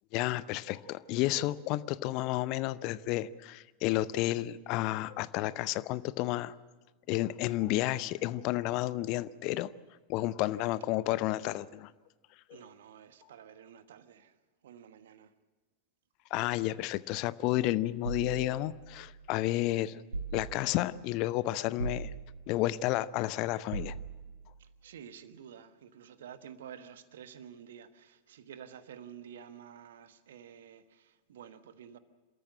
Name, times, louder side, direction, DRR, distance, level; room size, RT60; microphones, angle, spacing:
voice 1, 0.1-6.5 7.1-9.7 10.1-11.9 16.3-20.0 20.3-22.1 22.5-23.9, left 16 dB, 40° left, 0.6 m, -31 dB
voice 2, 12.5-15.3 24.6-32.0, right 8 dB, 60° right, 1.2 m, -50 dB
sound 1, 18.0-19.4 20.1-21.0 21.8-22.7 23.7-24.5, right 4 dB, 75° right, 2.5 m, -40 dB
28.0 x 13.5 x 7.5 m
figure-of-eight pair, 90°, 0 cm